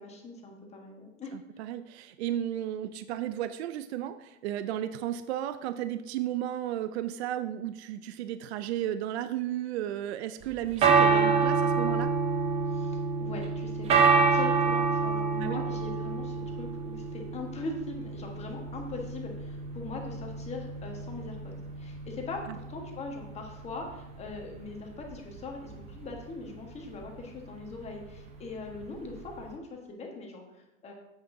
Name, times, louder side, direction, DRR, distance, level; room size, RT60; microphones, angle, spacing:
voice 1, 0.0-1.3 12.7-30.9, left 3 dB, 15° left, 1 dB, 1.3 m, -41 dB
voice 2, 1.3-12.1 15.4-15.6 22.5-22.6, right 11 dB, 60° right, 11 dB, 0.5 m, -34 dB
sound 1, 10.4-29.5, right 5 dB, 15° right, 0.7 m, -28 dB
9.3 x 7.9 x 2.7 m, 0.95 s
hypercardioid pair, 140°, 37 cm